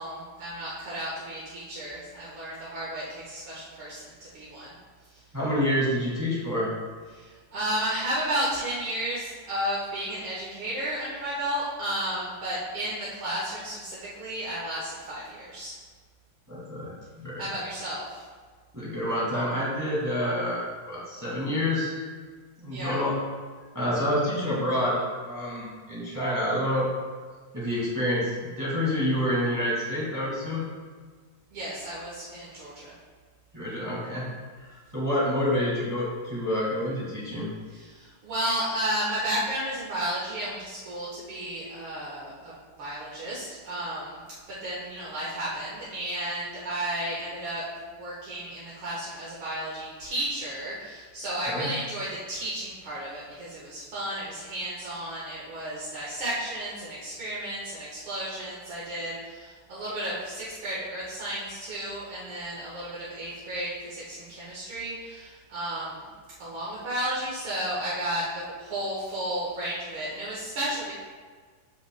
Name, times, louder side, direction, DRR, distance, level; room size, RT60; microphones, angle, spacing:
voice 1, 0.0-4.7 5.1-5.2 7.1-15.7 17.4-18.2 22.7-23.0 31.5-32.9 37.7-44.2 44.5-66.1 66.4-70.9, right 1 dB, 50° right, -8 dB, 1.7 m, -33 dB
voice 2, 5.3-6.7 16.5-17.4 18.7-21.9 22.6-23.1 23.7-26.9 27.5-30.6 33.5-34.3 34.6-37.5 51.5-51.7, left 1 dB, 10° right, -7 dB, 1.3 m, -28 dB
14.0 x 5.7 x 2.3 m, 1.5 s
omnidirectional pair, 4.1 m